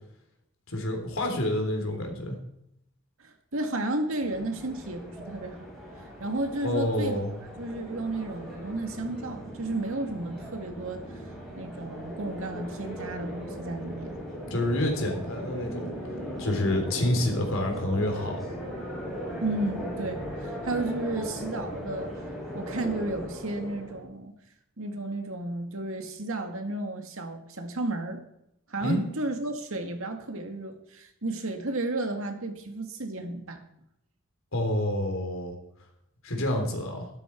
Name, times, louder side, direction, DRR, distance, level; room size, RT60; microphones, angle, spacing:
voice 1, 0.7-2.4 6.6-7.3 14.5-15.9 16.4-18.4 28.8-29.1 34.5-35.5 36.2-37.1, left 1 dB, 70° left, 3 dB, 3.4 m, -28 dB
voice 2, 3.2-5.7 6.2-7.2 7.6-11.0 11.6-14.3 19.4-22.1 22.5-24.3 24.8-28.2 28.7-33.6, right 2 dB, 75° right, 5 dB, 2.0 m, -33 dB
sound 1, 4.2-24.0, equal, ahead, 5.1 m, -38 dB
12.5 x 12.5 x 4.6 m, 0.81 s
head